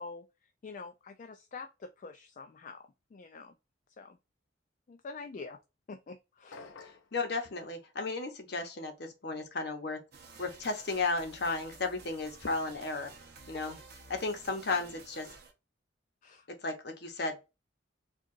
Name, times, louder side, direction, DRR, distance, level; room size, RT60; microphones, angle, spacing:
voice 1, 0.0-3.5 4.0-4.2 4.9-5.6 5.9-6.9 16.2-16.5, left 4 dB, 40° left, 0.3 m, -46 dB
sound 1, 6.5-7.1, left 4 dB, 85° left, 0.6 m, -49 dB
voice 2, 7.1-10.0 10.4-13.1 13.5-13.8 14.1-14.9 15.2-15.3 16.6-17.5, left 3 dB, 55° left, 0.8 m, -34 dB
sound 2, 10.1-15.5, right 4 dB, 55° right, 0.8 m, -52 dB
4.6 x 2.4 x 2.5 m
head